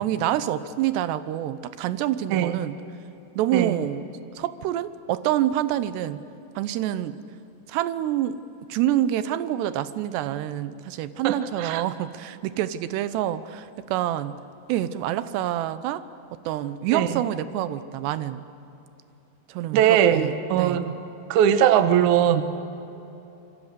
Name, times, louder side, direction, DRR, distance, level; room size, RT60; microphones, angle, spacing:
voice 1, 0.0-2.8 3.4-4.0 4.3-6.2 6.6-7.2 7.7-8.4 8.7-14.4 14.7-16.0 16.5-18.4 19.5-20.8, right 12 dB, 90° right, 13 dB, 3.0 m, -27 dB
voice 2, 11.2-11.8 16.9-17.1 19.7-21.0 21.3-22.4, right 10 dB, 65° right, 10 dB, 2.0 m, -20 dB
27.0 x 24.0 x 8.2 m, 2.9 s
omnidirectional pair, 4.7 m